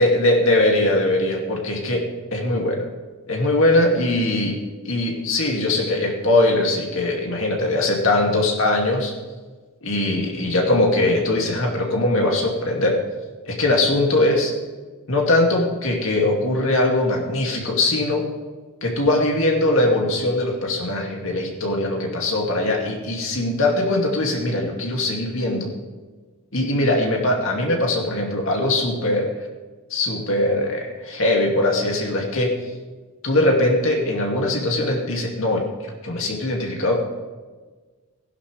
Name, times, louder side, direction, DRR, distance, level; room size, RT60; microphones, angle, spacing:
voice 1, 0.0-2.9 3.3-4.6 4.9-9.1 9.8-13.0 13.5-14.5 15.1-18.3 18.8-25.7 26.5-29.3 29.9-32.5 33.2-35.7 36.0-37.0, left 1 dB, 65° left, 0 dB, 2.3 m, -21 dB
15.5 x 11.5 x 3.3 m, 1.4 s
head